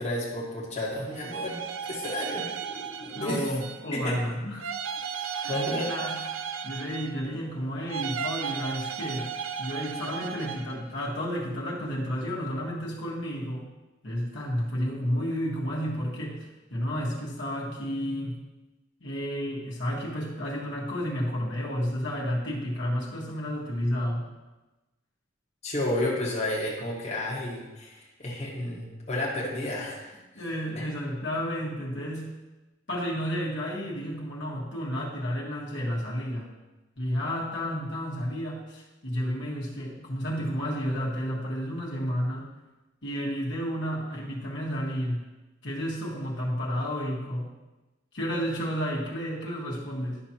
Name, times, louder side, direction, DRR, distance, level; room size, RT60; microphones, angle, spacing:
voice 1, 0.0-1.6 1.9-3.4 3.9-4.2 5.5-5.9 25.6-30.1, left 1 dB, 35° left, -5 dB, 1.4 m, -31 dB
sound 1, 1.1-4.0 4.6-7.4 7.9-10.8, right 7 dB, 90° right, 0.5 m, -35 dB
voice 2, 3.1-4.7 5.3-5.6 5.8-6.2 6.6-9.3 9.6-13.7 14.0-18.4 19.0-24.3 30.3-32.3 32.9-36.5 37.0-42.5 43.0-45.2 45.6-47.5 48.1-50.2, equal, 60° left, -4 dB, 1.6 m, -31 dB
11.0 x 6.0 x 2.9 m, 1.1 s
head